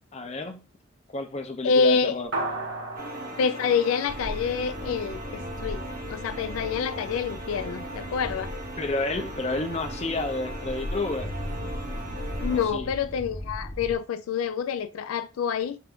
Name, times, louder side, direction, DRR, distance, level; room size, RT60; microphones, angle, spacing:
voice 1, 0.1-0.6 1.1-2.3 8.8-11.3 12.5-12.9, left 2 dB, 30° left, 0.5 m, -30 dB
voice 2, 1.6-2.2 3.4-8.5 12.4-15.8, left 6 dB, 85° left, 0.3 m, -27 dB
sound 1, 2.3-5.0, right 2 dB, 75° right, 1.4 m, -35 dB
sound 2, 3.0-12.7, right 1 dB, 40° right, 0.9 m, -38 dB
sound 3, 4.1-14.0, left 1 dB, 60° left, 0.9 m, -37 dB
4.5 x 2.5 x 3.5 m
head